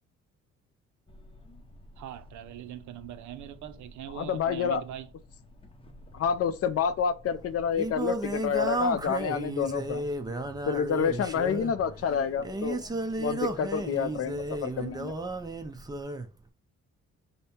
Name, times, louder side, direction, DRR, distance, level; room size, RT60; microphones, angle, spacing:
sound 1, 1.1-16.0, left 1 dB, 20° left, 0.8 m, -51 dB
voice 1, 2.0-5.1, right 12 dB, 75° right, 0.6 m, -42 dB
voice 2, 4.2-4.8 6.1-10.0 10.7-12.8 13.2-15.1, left 7 dB, 50° left, 0.5 m, -28 dB
Singing, 7.2-16.3, right 2 dB, 15° right, 0.5 m, -33 dB
5.3 x 2.1 x 4.2 m
cardioid pair, 90°, 30 cm